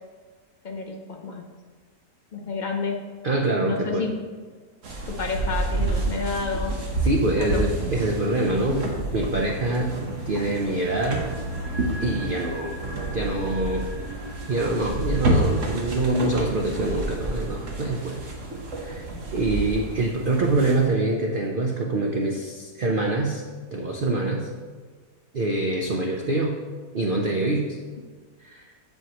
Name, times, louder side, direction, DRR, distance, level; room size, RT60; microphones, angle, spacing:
voice 1, 0.6-1.4 2.3-3.1 3.6-4.2 5.1-6.8 7.4-7.6, left 4 dB, 55° left, 2 dB, 0.5 m, -30 dB
voice 2, 3.2-4.1 7.0-10.0 10.3-11.2 12.0-13.9 14.5-18.2 18.8-19.1 19.3-23.4 23.7-24.5 25.3-26.6 26.9-27.8 28.4-28.6, right 2 dB, 85° right, 0 dB, 0.4 m, -25 dB
sound 1, 4.8-20.9, right 2 dB, 50° right, 1.3 m, -29 dB
sound 2, 10.7-20.9 21.2-21.3, equal, 30° right, 1.4 m, -41 dB
7.8 x 7.5 x 3.0 m, 1.5 s
omnidirectional pair, 1.8 m